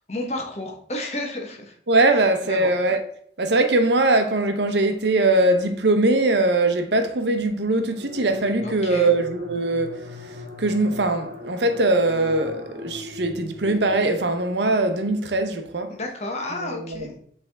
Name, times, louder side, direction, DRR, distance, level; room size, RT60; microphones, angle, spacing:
voice 1, 0.1-1.8 2.4-2.7 8.6-9.1 15.9-17.1, left 2 dB, 35° left, 1.1 m, -31 dB
voice 2, 1.9-3.0 3.4-10.1 10.6-15.9 16.5-17.1, right 2 dB, 75° right, 0.8 m, -21 dB
sound 1, 7.7-14.6, left 2 dB, 50° right, 1.3 m, -39 dB
7.9 x 3.5 x 3.5 m
head